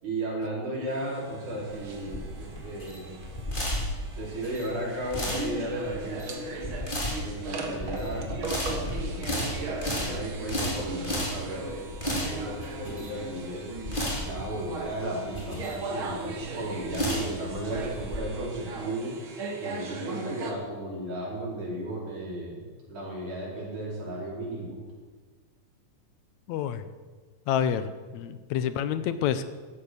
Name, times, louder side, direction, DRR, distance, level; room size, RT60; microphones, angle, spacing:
voice 1, 0.0-3.2 4.1-6.4 7.2-9.5 9.9-13.7 14.2-22.6 22.9-24.8, right 1 dB, 85° right, -5 dB, 6.4 m, -35 dB
sound 1, 0.9-20.5, right 3 dB, 50° right, 2.1 m, -38 dB
sound 2, 1.7-18.2, equal, 15° left, 3.3 m, -33 dB
voice 2, 26.5-26.9 27.5-29.5, left 9 dB, 80° left, 12 dB, 1.9 m, -28 dB
14.5 x 12.0 x 6.6 m, 1.4 s
omnidirectional pair, 3.4 m